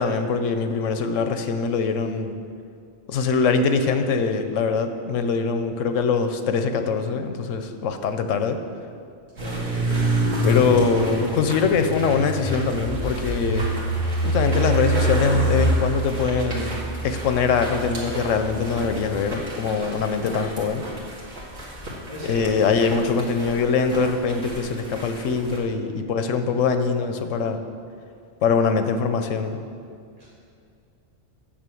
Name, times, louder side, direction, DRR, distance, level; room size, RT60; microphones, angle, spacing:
voice 1, 0.0-2.3 3.1-8.6 10.4-13.7 14.2-20.8 22.2-27.6 28.4-29.6, left 5 dB, 90° left, 8 dB, 1.1 m, -23 dB
voice 2, 9.4-9.9 22.1-22.8 30.2-30.3, right 1 dB, 40° right, -10 dB, 3.0 m, -35 dB
sound 1, 9.4-25.6, right 1 dB, 90° right, 2.4 m, -27 dB
8.9 x 6.5 x 7.7 m, 2.3 s
omnidirectional pair, 1.3 m